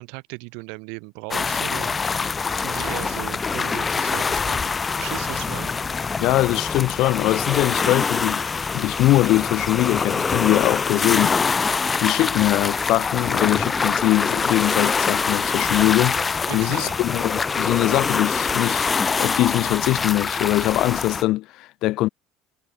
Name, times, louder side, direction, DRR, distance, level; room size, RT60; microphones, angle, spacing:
voice 1, 0.0-2.0 2.5-4.7 5.0-5.7 16.5-17.1, right 35 dB, 75° right, 5.4 m, -36 dB
sound 1, 1.3-21.2, left 5 dB, 25° left, 3.6 m, -24 dB
voice 2, 6.2-8.4 8.7-11.4 11.7-22.1, left 17 dB, 65° left, 2.3 m, -22 dB
hypercardioid pair, 80°, 0 cm